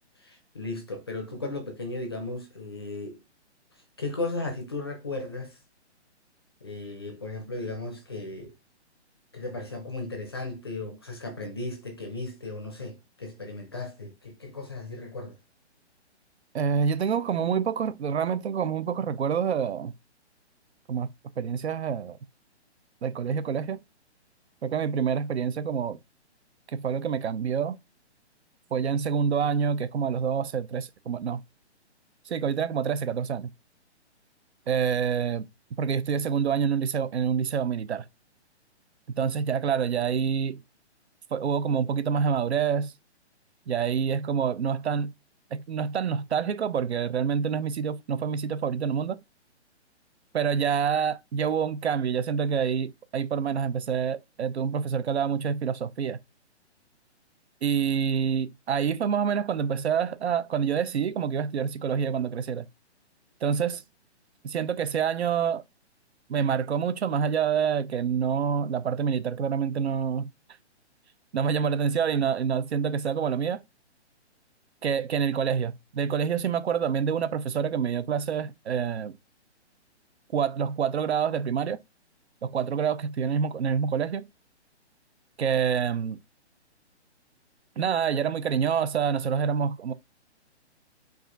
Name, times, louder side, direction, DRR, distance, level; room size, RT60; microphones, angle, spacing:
voice 1, 0.2-3.2 4.0-5.6 6.6-8.5 9.3-15.4, left 2 dB, 20° left, 0.5 m, -36 dB
voice 2, 16.5-19.9 20.9-21.1 21.4-22.2 23.0-23.8 24.6-26.0 26.7-27.8 28.7-31.4 32.3-33.5 34.7-35.5 35.8-38.1 39.1-40.6 41.3-42.9 43.7-45.1 45.5-49.2 50.3-56.2 57.6-62.7 63.4-63.8 64.4-65.6 66.3-70.3 71.3-73.6 74.8-79.2 80.3-81.8 82.4-84.3 85.4-86.2 87.8-89.9, right 7 dB, 70° right, 0.6 m, -27 dB
4.8 x 2.5 x 3.7 m
hypercardioid pair, 170°, 34 cm